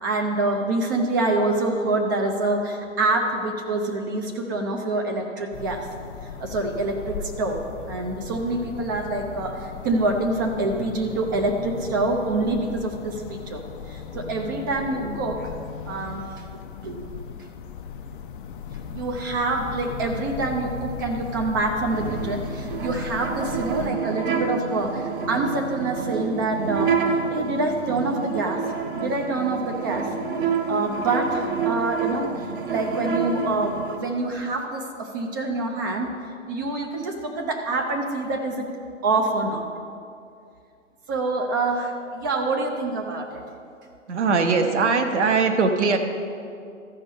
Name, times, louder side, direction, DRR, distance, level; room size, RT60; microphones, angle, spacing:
voice 1, 0.0-5.9 6.4-15.5 15.9-16.3 16.8-17.1 18.9-30.2 30.7-36.1 36.5-38.7 39.0-39.7 41.1-43.4, right 2 dB, 15° right, 3 dB, 0.4 m, -26 dB
sound 1, 5.5-23.9, left 7 dB, 40° left, 0.5 m, -37 dB
sound 2, 21.9-34.0, right 5 dB, 40° right, 0.8 m, -28 dB
voice 2, 44.1-46.0, right 4 dB, 60° right, 5 dB, 1.1 m, -20 dB
13.5 x 5.2 x 5.3 m, 2.4 s
figure-of-eight pair, 120°, 38 cm